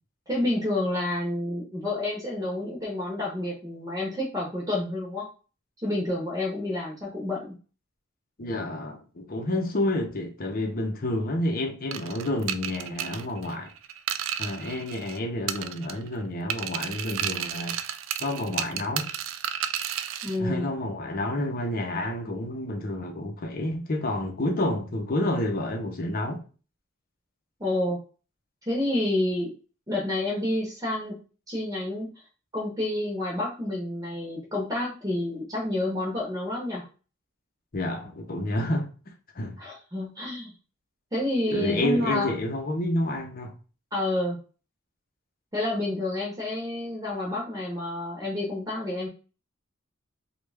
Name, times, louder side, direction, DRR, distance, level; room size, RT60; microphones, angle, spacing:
voice 1, 0.3-5.3 5.8-7.5 20.2-20.7 27.6-28.0 28.7-29.5 29.9-31.2 31.5-32.1 32.5-36.8 39.6-40.5 41.1-42.3 43.9-44.4 45.5-49.1, left 1 dB, 15° right, 0.9 m, -29 dB
voice 2, 8.4-13.7 14.4-17.8 18.2-19.1 20.4-26.4 37.7-38.9 39.3-39.6 41.5-43.6, left 1 dB, 45° left, 0.7 m, -29 dB
sound 1, 11.9-15.2 15.5-16.1 16.5-20.4, right 10 dB, 70° right, 0.3 m, -32 dB
3.2 x 2.4 x 3.3 m
head